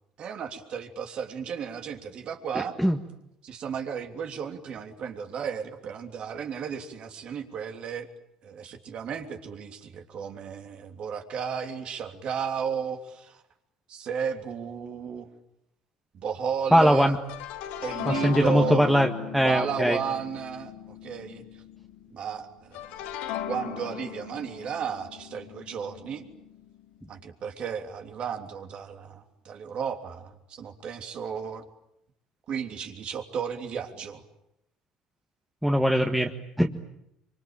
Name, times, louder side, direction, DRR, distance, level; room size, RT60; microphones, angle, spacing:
voice 1, 0.2-2.8 3.4-8.1 8.4-13.4 13.9-15.3 16.1-17.2 17.8-18.8 19.4-20.7 21.0-21.4 22.1-22.9 23.5-26.3 27.1-31.6 32.5-34.2, right 7 dB, 50° right, 5 dB, 3.2 m, -34 dB
voice 2, 2.6-3.0 16.7-17.2 18.1-20.0 35.6-36.3 36.6-36.7, equal, 5° right, 3 dB, 1.9 m, -21 dB
sound 1, 17.2-22.1 22.7-26.8, left 10 dB, 75° left, 2.0 m, -38 dB
25.0 x 25.0 x 9.0 m, 0.81 s
hypercardioid pair, 70°, 2 cm